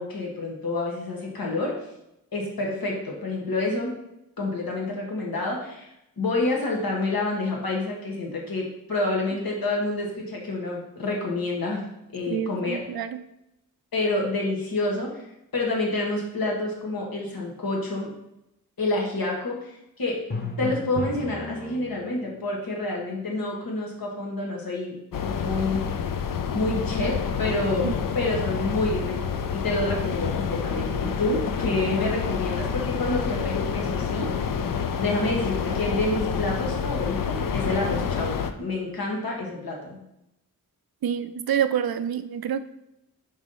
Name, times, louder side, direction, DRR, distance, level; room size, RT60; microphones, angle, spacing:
voice 1, 0.0-1.7 2.3-3.9 4.4-5.9 6.2-11.8 12.1-12.9 13.9-15.3 15.5-18.1 18.8-19.7 20.0-20.2 20.6-25.8 26.5-27.9 28.1-34.5 35.0-40.0, left 2 dB, 85° left, -1 dB, 1.5 m, -28 dB
voice 2, 12.3-13.2 27.8-27.9 41.0-42.6, right 8 dB, 85° right, 11 dB, 0.5 m, -27 dB
Drum, 20.3-22.3, left 3 dB, 25° left, 1.0 m, -33 dB
sound 1, 25.1-38.5, left 6 dB, 65° left, 0.5 m, -28 dB
4.8 x 4.0 x 5.5 m, 0.86 s
wide cardioid pair, 70°, 35 cm